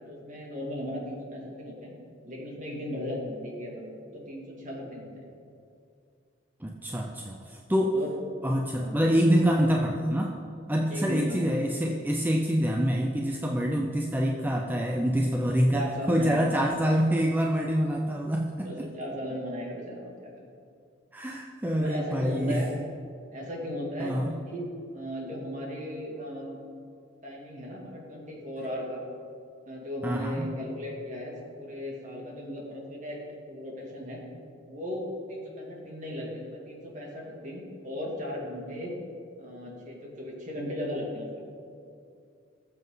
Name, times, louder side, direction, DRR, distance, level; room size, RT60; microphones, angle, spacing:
voice 1, 0.0-1.9 2.2-5.3 7.9-8.1 8.8-9.0 10.9-11.4 15.6-16.5 18.6-20.5 21.8-22.7 23.3-24.7 24.9-26.6 27.2-29.0 29.7-33.2 33.5-34.2 34.6-38.9 39.4-41.4, equal, 40° right, -2 dB, 2.6 m, -37 dB
voice 2, 6.6-8.0 8.4-10.3 10.7-18.9 21.1-22.6 24.0-24.3 30.0-30.5, equal, 10° right, 0 dB, 0.6 m, -26 dB
19.5 x 7.5 x 4.0 m, 2.4 s
head